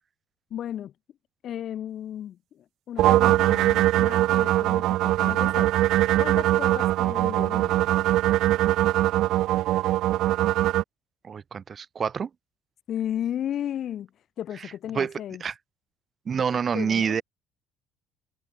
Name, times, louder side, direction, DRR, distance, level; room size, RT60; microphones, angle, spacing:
voice 1, 0.5-0.9 1.4-5.7 6.2-7.9 12.9-14.1 14.4-15.4 16.7-17.2, left 10 dB, 55° left, 7.0 m, -34 dB
sound 1, 3.0-10.8, right 15 dB, 65° right, 1.4 m, -22 dB
voice 2, 11.2-12.3 14.9-15.1 15.4-15.5 16.3-17.2, right 6 dB, 40° right, 4.0 m, -27 dB
hypercardioid pair, 65°, 0 cm